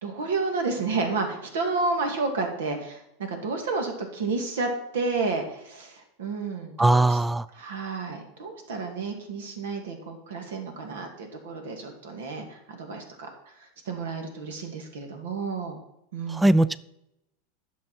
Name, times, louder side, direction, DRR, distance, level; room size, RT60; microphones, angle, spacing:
voice 1, 0.0-7.2 7.5-13.3 13.6-15.8 16.1-16.5, right 3 dB, 75° right, 4 dB, 2.1 m, -31 dB
voice 2, 6.8-7.5 16.3-16.8, right 2 dB, 10° right, 18 dB, 0.3 m, -20 dB
10.5 x 6.8 x 4.5 m, 0.83 s
hypercardioid pair, 95°, 0 cm